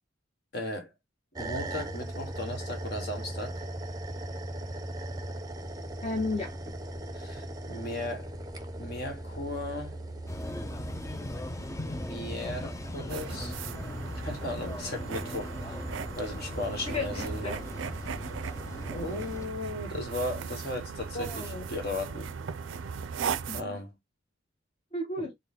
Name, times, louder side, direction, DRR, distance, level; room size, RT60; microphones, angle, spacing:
voice 1, 0.5-0.9 1.4-3.6 7.1-8.3 8.8-10.0 11.7-13.6 14.2-15.8 16.1-17.6 18.9-22.3 23.5-24.0, left 1 dB, 55° left, 1.4 m, -36 dB
sound 1, 1.4-19.4, right 1 dB, 20° right, 0.6 m, -40 dB
voice 2, 6.0-6.7 16.9-17.6 21.1-21.6 23.5-23.8 24.9-25.3, left 2 dB, 30° left, 0.8 m, -34 dB
sound 2, 10.3-19.5, left 1 dB, 15° left, 0.4 m, -39 dB
sound 3, 13.1-23.6, right 6 dB, 80° right, 0.4 m, -38 dB
3.8 x 2.1 x 3.6 m
head